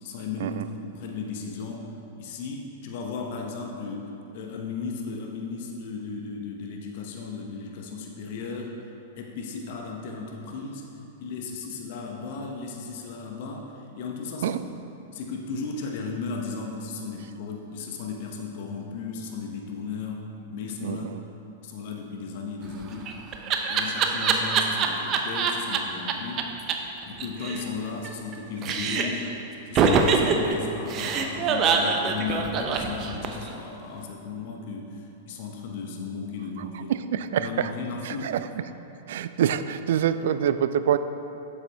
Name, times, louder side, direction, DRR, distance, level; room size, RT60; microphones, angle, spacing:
voice 1, 0.0-1.9 2.2-8.7 9.2-10.8 11.2-14.6 15.1-20.2 20.5-21.1 21.6-23.1 23.7-26.5 27.0-36.9 37.4-38.4, left 4 dB, 55° left, 1 dB, 0.9 m, -35 dB
voice 2, 20.8-21.2 36.9-37.7 38.0-38.6 39.1-41.0, right 9 dB, 65° right, 12 dB, 0.3 m, -26 dB
Laughter, 22.7-25.8 26.1-26.2 26.4-26.5 26.7-26.8 27.0-28.4 28.6-29.3 29.8-33.5, right 5 dB, 35° right, 0.6 m, -24 dB
8.2 x 7.1 x 3.4 m, 2.9 s
hypercardioid pair, 105°, 0 cm